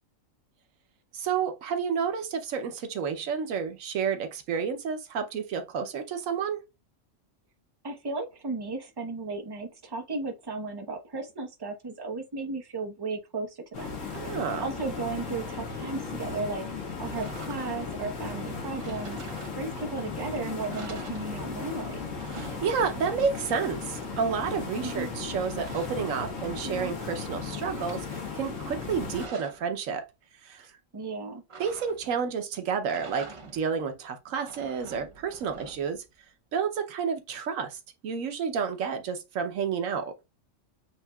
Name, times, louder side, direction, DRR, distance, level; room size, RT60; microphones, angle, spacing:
voice 1, 1.1-6.6 14.1-14.6 22.3-30.0 30.4-30.7 31.6-36.0 36.5-40.1, right 6 dB, 90° right, 1.2 m, -30 dB
voice 2, 7.8-13.9 14.2-16.7 17.0-19.2 19.5-22.1 24.8-25.1 26.6-26.9 30.9-31.4, right 3 dB, 20° right, 0.8 m, -35 dB
sound 1, 13.7-29.3, left 4 dB, 85° left, 1.6 m, -36 dB
sound 2, 17.1-18.0 18.7-20.0 20.3-20.4 20.7-21.8 22.0-23.3 25.0-26.8 27.2-28.1 28.8-29.7 31.5-32.3 32.8-33.8 34.3-36.0, right 3 dB, 40° right, 0.5 m, -47 dB
8.0 x 2.7 x 2.3 m
omnidirectional pair, 1.3 m